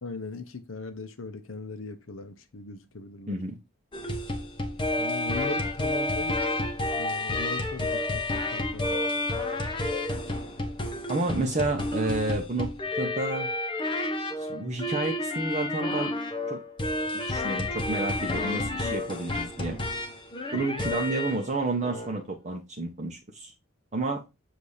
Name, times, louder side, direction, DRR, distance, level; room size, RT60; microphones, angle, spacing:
voice 1, 0.0-3.4 5.0-6.6 6.9-9.0 20.5-20.7, left 3 dB, 70° left, 0.8 m, -39 dB
sound 1, 3.9-21.5 21.8-22.1, left 2 dB, 25° left, 1.0 m, -30 dB
voice 2, 11.1-12.7 13.0-13.5 14.4-16.1 16.5-16.6 17.1-19.8 20.5-23.5 23.9-24.2, right 2 dB, 35° right, 1.0 m, -30 dB
7.7 x 2.7 x 4.9 m
head